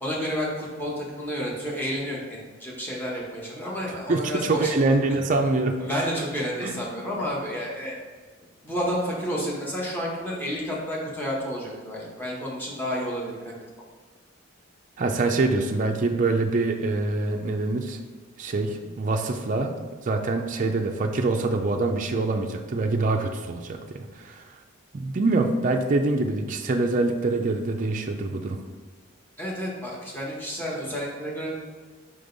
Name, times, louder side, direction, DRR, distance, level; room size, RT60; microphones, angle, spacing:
voice 1, 0.0-4.7 5.1-5.4 5.8-7.9 8.6-13.5 29.4-31.5, equal, 10° left, -4 dB, 1.3 m, -30 dB
voice 2, 4.1-6.1 6.6-6.7 15.0-18.0 18.4-19.7 20.0-24.4 24.9-28.6, right 3 dB, 40° right, 3 dB, 0.4 m, -25 dB
5.3 x 5.1 x 3.9 m, 1.5 s
head